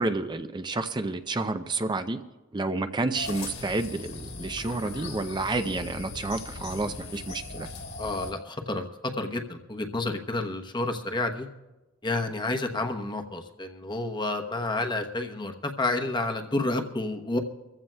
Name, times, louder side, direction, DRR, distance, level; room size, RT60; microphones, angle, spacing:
voice 1, 0.0-2.2 2.5-7.7, right 2 dB, 20° right, 9 dB, 0.4 m, -30 dB
sound 1, 3.1-8.3, left 3 dB, 80° left, 3.4 m, -39 dB
voice 2, 8.0-11.5 12.0-17.4, left 2 dB, 20° left, 5 dB, 0.9 m, -30 dB
24.5 x 15.0 x 2.2 m, 1.1 s
head